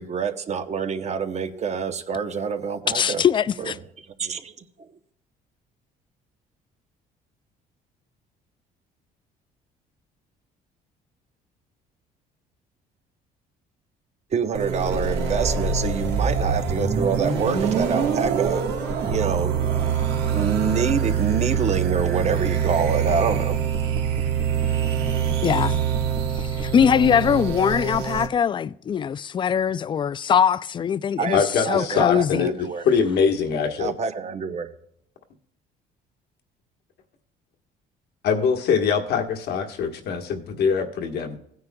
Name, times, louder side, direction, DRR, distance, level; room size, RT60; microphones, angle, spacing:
voice 1, 0.0-3.2 3.6-3.7 4.2-4.5 4.8-4.9 14.3-18.8 19.1-19.9 20.2-23.6 31.2-32.8 33.8-34.7, right 6 dB, 40° right, 0.9 m, -26 dB
voice 2, 2.9-3.8 25.4-25.8 26.4-32.5, left 8 dB, 30° left, 0.3 m, -22 dB
sound 1, 14.5-28.3, right 7 dB, 80° right, 1.5 m, -24 dB
voice 3, 31.3-32.5 32.8-33.9 38.2-41.4, left 6 dB, 75° left, 1.4 m, -23 dB
16.5 x 9.5 x 2.3 m
cardioid pair, 110°, 17 cm